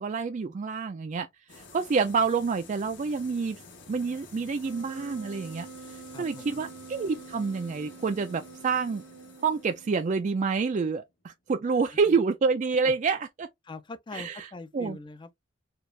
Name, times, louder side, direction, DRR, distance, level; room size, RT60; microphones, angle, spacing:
voice 1, 0.0-3.6 3.9-9.0 9.4-13.5 14.1-14.5 14.7-15.0, right 5 dB, 40° right, 0.3 m, -28 dB
sound 1, 1.5-11.1, left 3 dB, 65° left, 1.2 m, -51 dB
Wind instrument woodwind instrument, 4.6-10.1, right 4 dB, 70° right, 0.8 m, -46 dB
voice 2, 6.1-6.6 11.9-12.2 12.8-12.9 13.6-15.4, left 3 dB, 25° left, 0.4 m, -43 dB
4.5 x 2.4 x 3.1 m
head